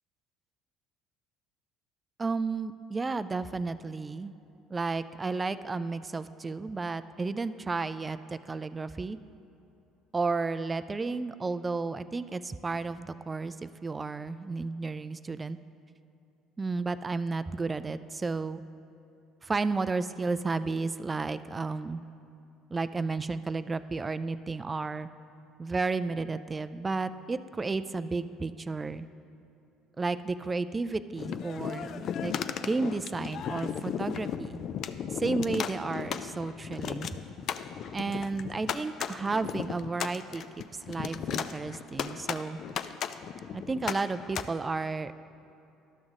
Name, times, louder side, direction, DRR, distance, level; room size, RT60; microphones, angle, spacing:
voice 1, 2.2-4.3 4.7-9.2 10.1-15.6 16.6-18.6 19.4-22.0 22.7-25.1 25.6-29.1 30.0-34.7 35.1-37.1 37.9-42.6 43.5-45.1, right 3 dB, 25° right, 14 dB, 0.3 m, -32 dB
sound 1, 31.2-44.4, left 8 dB, 55° left, 0.3 m, -35 dB
12.0 x 6.2 x 3.7 m, 2.8 s
supercardioid pair, 80°, 0 cm